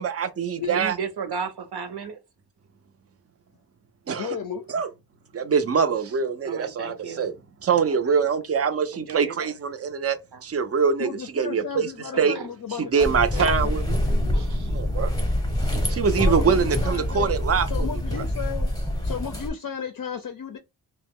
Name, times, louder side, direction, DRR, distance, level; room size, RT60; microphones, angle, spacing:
voice 1, 0.0-0.9 4.1-4.3 4.7-4.9 5.3-7.3 7.6-11.1 11.4-11.9 12.2-12.4 12.9-13.8 14.7-15.1 15.9-17.7, right 6 dB, 35° right, 0.4 m, -24 dB
voice 2, 0.7-2.2 5.8-6.0 6.4-7.3 7.9-8.2 8.9-9.5 10.3-10.4 12.1-12.5 13.4-13.6 14.3-14.7, right 6 dB, 70° right, 0.7 m, -34 dB
voice 3, 4.1-4.7 11.0-13.8 14.1-14.2 16.1-17.3 17.7-18.7 19.0-20.6, left 7 dB, 55° left, 0.5 m, -34 dB
sound 1, 13.0-19.5, left 1 dB, 10° left, 0.8 m, -25 dB
2.9 x 2.1 x 3.5 m
wide cardioid pair, 120°, 40 cm